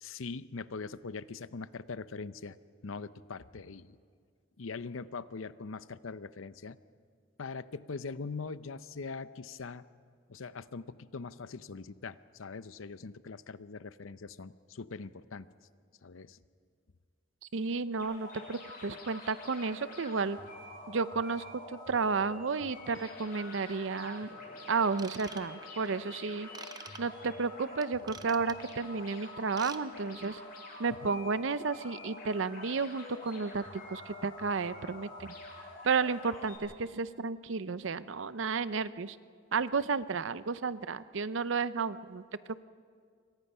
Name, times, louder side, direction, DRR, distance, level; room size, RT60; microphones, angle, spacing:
voice 1, 0.0-2.6 2.8-4.0 4.6-6.8 7.4-9.8 10.3-15.5 16.0-16.4 31.0-31.1, left 4 dB, 75° left, 15 dB, 0.7 m, -42 dB
voice 2, 17.5-20.4 20.9-24.3 24.7-26.5 27.0-30.4 30.8-35.3 35.8-39.2 39.5-42.2, right 4 dB, 65° right, 15 dB, 0.6 m, -32 dB
sound 1, 18.0-36.6, left 2 dB, 45° left, 7.2 m, -47 dB
Ratchet pawl / Tools, 24.9-25.9 26.5-27.0 27.8-28.7 29.4-29.8 30.1-30.3 30.8-30.9, right 5 dB, 20° right, 0.6 m, -46 dB
28.0 x 23.5 x 5.6 m, 2.1 s
head